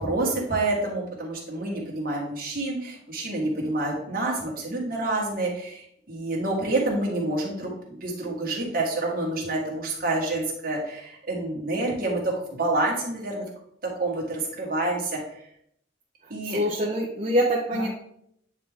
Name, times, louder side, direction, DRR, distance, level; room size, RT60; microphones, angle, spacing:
voice 1, 0.0-12.3 12.6-13.4 14.0-15.2 16.3-16.6 17.7-17.9, right 2 dB, 50° right, -2 dB, 1.8 m, -28 dB
voice 2, 16.4-17.9, equal, 35° right, -4 dB, 0.8 m, -24 dB
9.2 x 3.6 x 3.6 m, 0.71 s
head